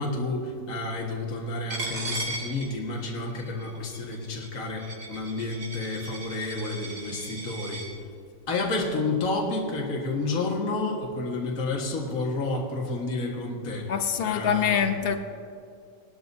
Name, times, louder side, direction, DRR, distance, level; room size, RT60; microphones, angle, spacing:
voice 1, 0.0-7.9 8.5-13.9 14.2-14.9, left 2 dB, 45° left, -1 dB, 2.0 m, -30 dB
Coin (dropping), 1.7-7.9, right 2 dB, 55° right, 3.1 m, -37 dB
voice 2, 13.9-15.2, left 8 dB, 80° left, 7 dB, 0.5 m, -25 dB
20.0 x 12.5 x 2.7 m, 2.4 s
omnidirectional pair, 2.0 m